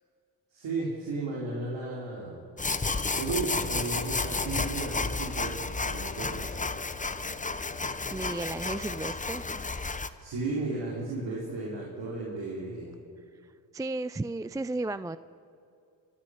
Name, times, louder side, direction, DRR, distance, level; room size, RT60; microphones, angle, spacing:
voice 1, 0.5-2.4 3.2-6.6 10.2-12.9, right 3 dB, 65° right, -3 dB, 4.0 m, -34 dB
sound 1, 2.6-10.1, left 3 dB, 15° left, 1.0 m, -32 dB
voice 2, 7.7-9.4 13.7-15.2, right 2 dB, 10° right, 15 dB, 0.4 m, -34 dB
24.0 x 11.5 x 9.9 m, 2.5 s
supercardioid pair, 60°, 45 cm